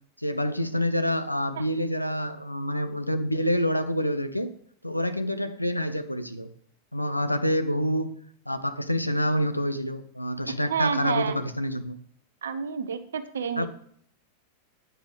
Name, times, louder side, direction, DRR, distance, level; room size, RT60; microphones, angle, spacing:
voice 1, 0.2-4.5 4.8-6.5 6.9-8.1 8.5-11.9 13.6-13.7, equal, 90° left, 10 dB, 0.6 m, -27 dB
voice 2, 10.7-11.3 12.4-13.7, right 6 dB, 65° right, 11 dB, 0.7 m, -29 dB
8.9 x 4.4 x 5.2 m, 0.63 s
figure-of-eight pair, 90°, 0 cm